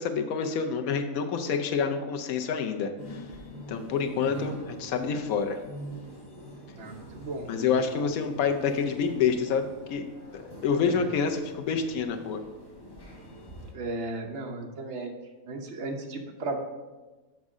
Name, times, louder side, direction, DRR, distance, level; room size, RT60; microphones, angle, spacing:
voice 1, 0.0-3.2 3.7-5.6 7.5-10.0 10.3-12.4, left 6 dB, 80° left, 5 dB, 1.1 m, -28 dB
sound 1, 3.0-13.7, right 1 dB, 20° left, 1.0 m, -45 dB
voice 2, 4.2-4.6 6.8-8.0 11.0-11.1 13.7-15.1 15.5-16.6, right 2 dB, 55° right, 3 dB, 1.0 m, -36 dB
7.3 x 5.2 x 3.6 m, 1.2 s
omnidirectional pair, 1.5 m